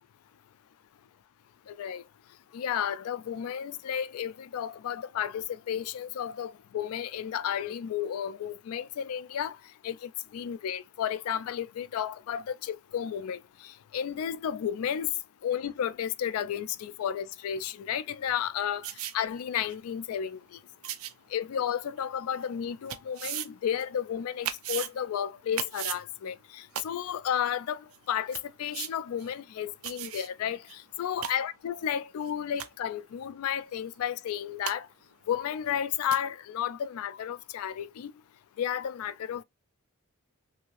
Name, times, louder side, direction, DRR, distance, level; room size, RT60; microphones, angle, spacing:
voice 1, 1.7-2.0 2.5-9.6 9.8-15.1 15.4-20.6 21.3-34.9 35.3-38.1 38.6-39.4, left 9 dB, 80° left, 0.3 m, -32 dB
sound 1, 18.8-19.1 19.7-19.8 20.8-21.1 22.0-22.1 22.9-23.5 23.8-23.9 24.5-24.9 25.6-26.0 26.7-26.8 27.5-27.6 27.9-28.0 28.3-28.4 28.7-28.9 29.2-29.3 29.8-30.3 30.7-30.8 31.1-31.3 32.3-32.4 32.6-32.9 34.3-34.4 34.7-34.8 35.7-35.8 36.1-36.2, right 11 dB, 75° right, 0.4 m, -35 dB
2.7 x 2.4 x 3.0 m
head